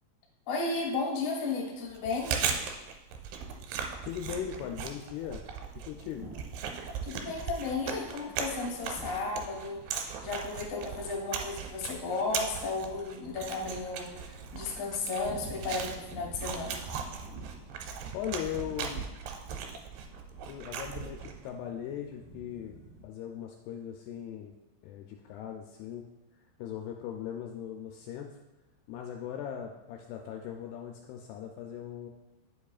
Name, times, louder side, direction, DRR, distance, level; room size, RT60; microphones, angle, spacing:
voice 1, 0.5-2.4 7.0-9.8 10.2-16.8, left 3 dB, 65° left, -3 dB, 1.1 m, -34 dB
Chewing mastication, 1.9-21.5, right 6 dB, 80° right, 2.6 m, -38 dB
voice 2, 4.0-5.4 5.8-6.3 18.1-19.1 20.4-22.8 23.0-24.5 24.8-26.1 26.6-28.3 28.9-32.1, left 9 dB, 85° left, 2 dB, 2.3 m, -39 dB
Thunder / Rain, 6.0-23.0, right 2 dB, 35° right, 2.1 m, -51 dB
8.8 x 7.2 x 2.4 m, 1.1 s
omnidirectional pair, 5.1 m